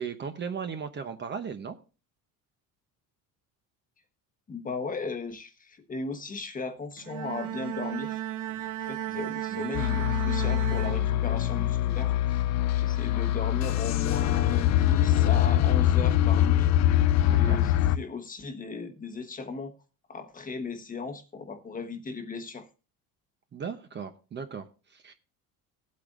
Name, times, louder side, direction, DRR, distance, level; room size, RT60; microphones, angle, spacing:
voice 1, 0.0-1.8 9.1-9.2 9.5-9.8 17.3-17.6 23.5-25.1, right 6 dB, 30° right, 0.8 m, -37 dB
voice 2, 4.5-8.2 8.8-12.1 12.7-16.7 17.3-19.7 20.1-22.7, left 4 dB, 20° left, 1.1 m, -36 dB
Bowed string instrument, 7.0-11.6, right 12 dB, 60° right, 0.8 m, -35 dB
sound 1, 9.7-18.0, left 12 dB, 45° left, 0.4 m, -24 dB
17.0 x 8.5 x 2.5 m
cardioid pair, 140°, 37 cm